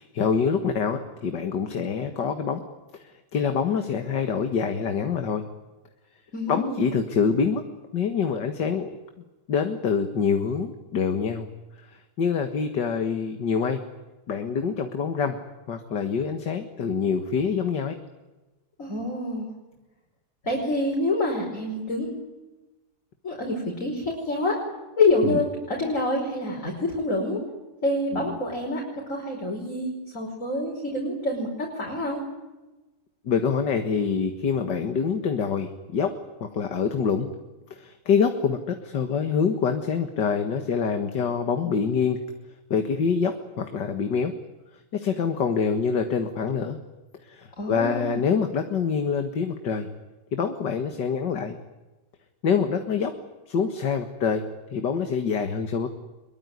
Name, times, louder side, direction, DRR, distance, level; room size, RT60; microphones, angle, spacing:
voice 1, 0.0-2.6 2.9-5.4 6.5-7.6 7.9-8.9 9.5-11.5 11.8-13.8 14.3-15.4 15.7-18.0 25.2-25.4 28.1-28.4 33.2-36.1 36.4-37.3 37.7-42.2 42.7-44.3 44.9-46.8 47.2-49.9 50.3-51.6 52.4-53.1 53.5-54.4 54.7-55.9, left 6 dB, 90° left, 6 dB, 2.3 m, -25 dB
voice 2, 6.3-6.9 18.8-19.5 20.4-22.2 23.2-24.6 25.0-27.4 27.8-28.8 29.1-32.2 47.6-48.2, left 2 dB, 45° left, -2 dB, 5.7 m, -27 dB
23.5 x 22.5 x 9.8 m, 1.1 s
omnidirectional pair, 1.8 m